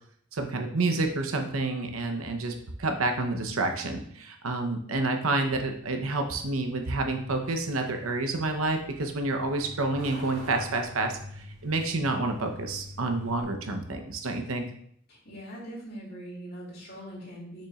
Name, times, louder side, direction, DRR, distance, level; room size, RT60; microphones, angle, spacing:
voice 1, 0.3-2.5 2.8-14.7, right 2 dB, 90° right, 5 dB, 0.9 m, -29 dB
Truck, 5.8-13.4, equal, 70° right, 2.5 m, -46 dB
voice 2, 15.1-17.7, right 1 dB, 50° left, -5 dB, 2.6 m, -42 dB
6.9 x 6.2 x 2.4 m, 0.65 s
head